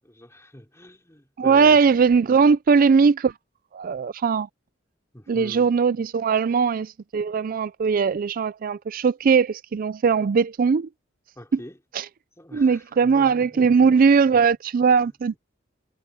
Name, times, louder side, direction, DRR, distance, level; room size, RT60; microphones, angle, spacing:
voice 1, 0.0-1.8 5.1-5.7 11.4-11.8 12.4-13.9, equal, 15° left, 3.7 m, -43 dB
voice 2, 1.4-3.3 3.7-4.5 5.3-10.9 11.9-12.1 12.5-15.3, right 5 dB, 45° right, 0.4 m, -19 dB
head